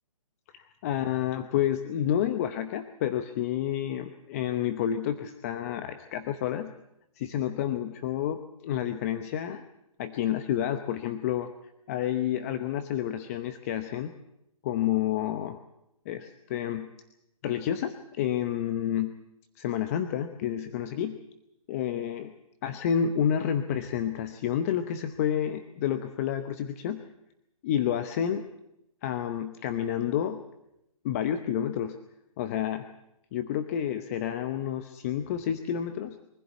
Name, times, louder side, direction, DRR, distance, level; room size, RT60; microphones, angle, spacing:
voice 1, 0.5-6.7 7.2-9.6 10.0-11.5 11.9-14.1 14.6-15.6 16.1-16.9 17.4-19.2 19.6-21.2 21.7-22.3 22.6-27.0 27.6-28.5 29.0-30.4 31.0-32.0 32.4-32.9 33.3-36.2, left 10 dB, 25° left, 9 dB, 0.8 m, -29 dB
24.0 x 15.5 x 8.2 m, 0.85 s
hypercardioid pair, 155°, 19 cm